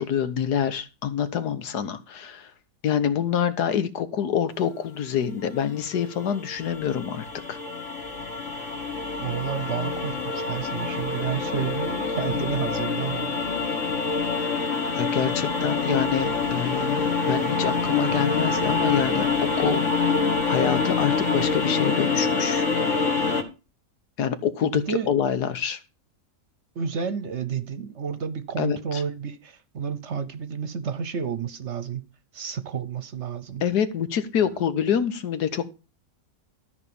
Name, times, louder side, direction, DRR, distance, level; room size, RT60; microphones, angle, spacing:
voice 1, 0.0-2.5 2.8-7.6 14.9-19.3 19.6-22.7 24.2-25.8 28.6-29.0 33.6-35.7, left 8 dB, 80° left, 1.7 m, -26 dB
sound 1, 5.9-23.4, left 4 dB, 50° left, 2.0 m, -26 dB
voice 2, 9.2-13.4 24.6-25.1 26.8-32.1 32.3-33.6, right 7 dB, 50° right, 1.1 m, -31 dB
13.0 x 5.1 x 6.9 m
omnidirectional pair, 1.7 m